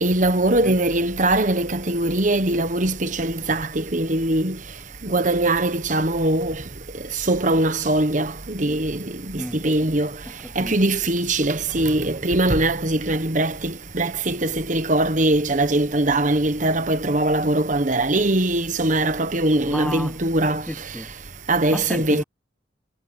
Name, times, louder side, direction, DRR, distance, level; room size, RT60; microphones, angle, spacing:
voice 1, 0.0-4.6 5.0-6.6 7.3-10.1 10.6-20.6 21.5-22.2, right 2 dB, 45° right, 1.3 m, -21 dB
voice 2, 10.3-10.7 19.6-20.2 20.7-21.1 21.7-22.2, equal, 5° left, 0.7 m, -31 dB
head